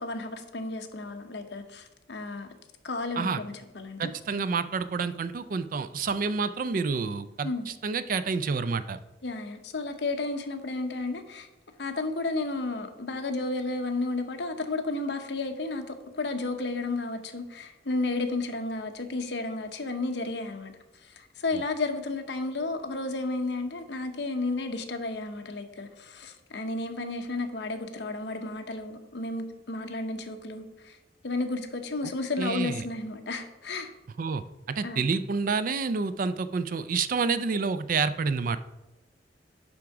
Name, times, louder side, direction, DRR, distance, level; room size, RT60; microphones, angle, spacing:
voice 1, 0.0-2.5 2.8-4.1 7.4-7.7 9.2-11.5 11.8-20.7 21.0-31.0 31.2-33.9 34.8-35.1, left 2 dB, 65° left, 0.8 m, -32 dB
voice 2, 4.0-9.0 21.5-21.6 32.4-32.9 34.2-34.4 34.8-38.6, right 4 dB, 50° right, 0.4 m, -28 dB
10.5 x 3.6 x 4.8 m
head